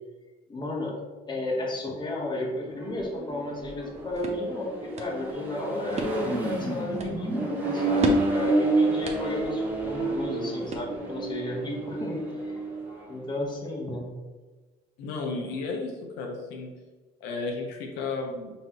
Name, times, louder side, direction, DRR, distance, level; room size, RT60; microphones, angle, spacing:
voice 1, 0.5-8.1 8.3-12.6 13.1-14.1, left 2 dB, 25° left, -1 dB, 1.1 m, -33 dB
Accelerating revving vroom, 2.7-13.1, right 2 dB, 10° right, 1.2 m, -29 dB
sound 1, 3.7-11.3, right 2 dB, 40° right, 0.8 m, -36 dB
voice 2, 15.0-16.7 17.2-18.5, left 3 dB, 90° left, 1 dB, 0.8 m, -33 dB
5.6 x 3.1 x 3.0 m, 1.3 s
cardioid pair, 110°, 17 cm